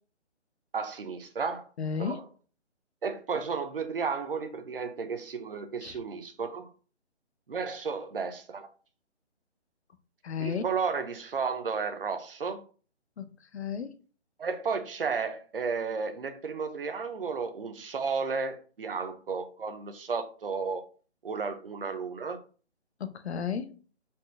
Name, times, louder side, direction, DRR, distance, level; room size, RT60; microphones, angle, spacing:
voice 1, 0.7-1.7 2.0-2.2 3.0-6.7 7.5-8.7 10.4-12.6 14.4-20.8 21.2-22.4, right 5 dB, 50° right, 0.6 m, -33 dB
voice 2, 1.8-2.2 5.8-6.0 10.2-10.6 13.2-13.9 23.0-23.8, left 7 dB, 65° left, 0.6 m, -34 dB
4.3 x 2.1 x 3.2 m
hypercardioid pair, 175°, 35 cm